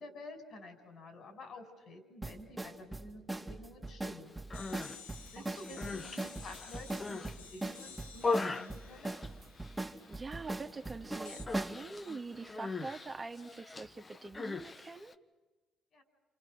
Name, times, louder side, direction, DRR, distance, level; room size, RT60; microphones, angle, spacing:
voice 1, 0.0-4.4 5.3-9.2 15.9-16.0, left 2 dB, 60° left, 7 dB, 5.7 m, -50 dB
sound 1, 2.2-11.8, right 2 dB, 10° right, 2.5 m, -40 dB
Human voice, 4.4-5.0 5.6-7.4 7.8-9.8 10.1-10.5 10.8-11.0 11.5-15.1, left 4 dB, 35° left, 1.4 m, -39 dB
sound 2, 4.5-10.2 11.3-11.5, left 7 dB, 90° left, 1.6 m, -53 dB
voice 2, 5.4-6.1 10.1-15.1, right 3 dB, 30° right, 5 dB, 2.0 m, -45 dB
29.0 x 29.0 x 6.7 m, 1.2 s
hypercardioid pair, 45°, 0 cm